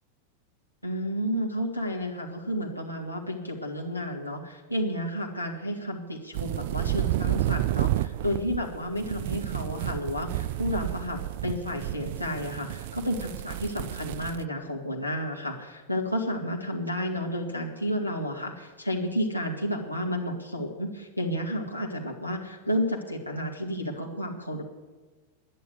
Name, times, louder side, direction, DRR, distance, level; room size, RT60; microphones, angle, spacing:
voice 1, 0.8-24.6, equal, 85° left, -1 dB, 2.0 m, -31 dB
sound 1, 6.3-14.4, right 15 dB, 50° right, 0.3 m, -31 dB
10.5 x 9.3 x 9.9 m, 1.3 s
figure-of-eight pair, 90°, 0 cm